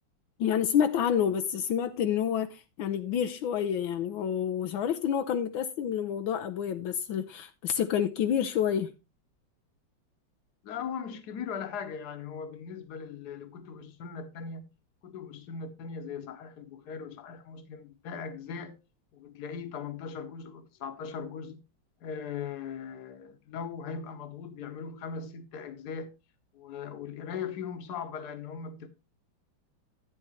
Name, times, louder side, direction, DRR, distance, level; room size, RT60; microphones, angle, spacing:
voice 1, 0.4-8.9, left 8 dB, 80° left, 1.5 m, -28 dB
voice 2, 10.6-14.6 15.0-18.8 19.1-21.6 22.0-26.1 26.5-28.9, left 6 dB, 55° left, 1.6 m, -39 dB
11.0 x 9.0 x 3.1 m
omnidirectional pair, 2.1 m